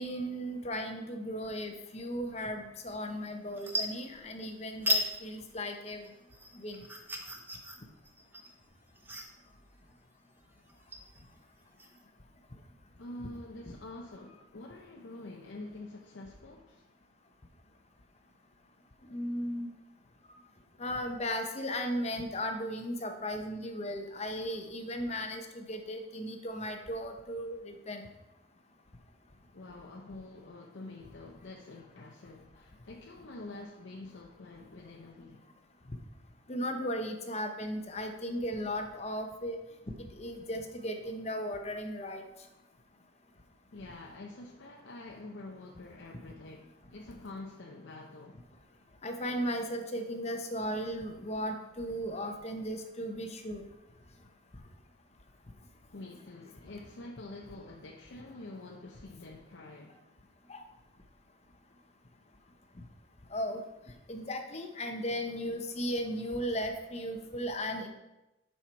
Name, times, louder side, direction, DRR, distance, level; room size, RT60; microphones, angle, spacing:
voice 1, 0.0-6.0 6.5-6.8 19.1-19.7 20.8-28.0 35.9-36.0 36.5-39.6 40.2-42.2 49.0-53.6 60.5-60.6 63.3-63.6 64.1-67.9, equal, 35° left, 0.8 m, -36 dB
sound 1, 3.0-3.2 3.5-4.5 4.8-5.1 5.5-12.0, left 1 dB, 10° right, 0.7 m, -36 dB
voice 2, 13.0-16.8 29.5-35.5 43.7-48.4 55.9-60.0, left 2 dB, 75° left, 0.7 m, -47 dB
7.4 x 5.6 x 4.5 m
head